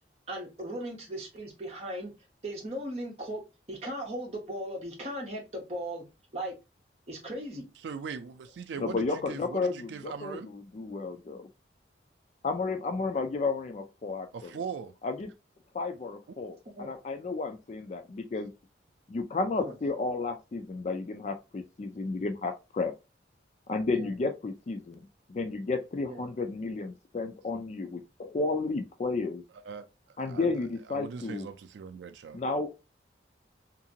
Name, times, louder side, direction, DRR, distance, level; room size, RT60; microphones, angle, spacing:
voice 1, 0.3-2.1 2.4-3.4 3.7-6.0 6.3-6.6 7.1-7.7 16.8-16.9 19.6-19.7 23.9-24.1 26.1-26.2 30.4-30.5, right 1 dB, 35° right, 0.9 m, -37 dB
voice 2, 7.8-10.5 14.3-14.9 29.6-29.9 30.3-30.5 30.9-32.4, right 6 dB, 80° right, 0.3 m, -40 dB
voice 3, 8.8-11.5 12.4-14.5 15.0-15.3 15.7-18.5 19.1-22.9 23.7-29.4 30.2-31.5 32.3-32.7, left 3 dB, 40° left, 0.3 m, -32 dB
2.8 x 2.6 x 2.6 m
head